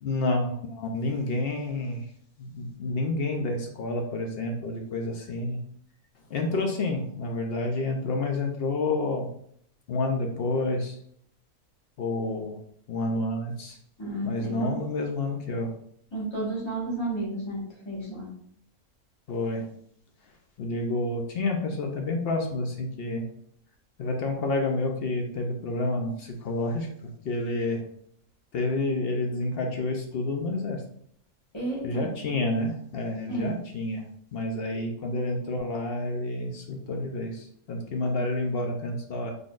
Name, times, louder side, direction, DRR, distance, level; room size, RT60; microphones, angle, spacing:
voice 1, 0.0-2.1 2.4-5.6 6.3-9.3 9.9-11.0 12.0-12.6 12.9-13.8 14.2-15.7 19.3-19.7 20.6-23.2 24.0-26.9 27.2-27.9 28.5-30.8 31.8-34.0 34.3-39.3, left 2 dB, 60° left, 2 dB, 0.6 m, -29 dB
voice 2, 14.0-14.7 16.1-17.6 17.8-18.3 31.5-32.1 33.3-33.5, right 2 dB, 20° left, -6 dB, 1.5 m, -31 dB
3.9 x 3.4 x 2.4 m, 0.65 s
omnidirectional pair, 1.5 m